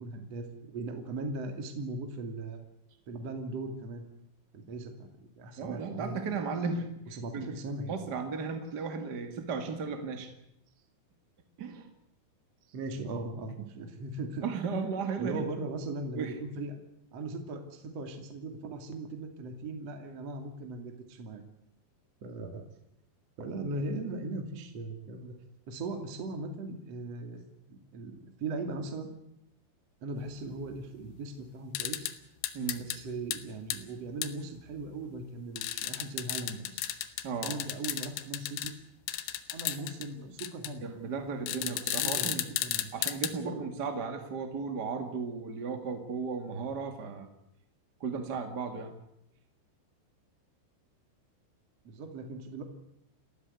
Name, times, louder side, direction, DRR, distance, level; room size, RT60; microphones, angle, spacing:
voice 1, 0.0-2.6 3.1-4.1 4.5-6.2 7.1-8.0 12.7-14.4 14.7-16.7 17.1-21.4 22.2-22.7 23.4-25.3 25.7-27.4 27.7-29.1 30.0-32.1 32.8-36.8 37.4-38.7 39.5-40.8 41.6-42.9 43.4-43.6 51.8-52.6, right 2 dB, 40° right, 4 dB, 2.8 m, -39 dB
voice 2, 5.6-7.5 7.9-10.3 11.6-11.9 14.4-15.4 16.1-16.3 32.5-32.9 37.2-37.5 40.8-42.4 42.9-47.3 48.0-48.9, right 5 dB, 60° right, 6 dB, 1.0 m, -35 dB
sound 1, 31.8-32.1 32.4-33.0 33.3-33.4 33.7-33.8 34.2-34.3 35.6-38.7 39.1-40.1 40.4-40.7 41.5-43.3, left 12 dB, 85° left, 3.8 m, -34 dB
30.0 x 13.5 x 9.6 m, 0.79 s
omnidirectional pair, 5.6 m